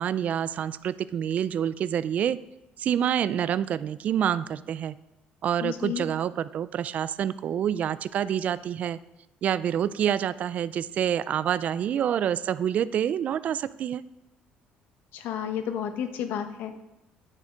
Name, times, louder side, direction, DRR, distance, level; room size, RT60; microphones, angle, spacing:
voice 1, 0.0-2.4 2.8-5.0 5.4-9.0 9.4-14.0, right 9 dB, 50° right, 17 dB, 0.3 m, -27 dB
voice 2, 5.6-6.1 15.1-16.7, left 9 dB, 75° left, 8 dB, 1.0 m, -31 dB
9.8 x 6.3 x 5.1 m, 0.94 s
cardioid pair, 120°, 3 cm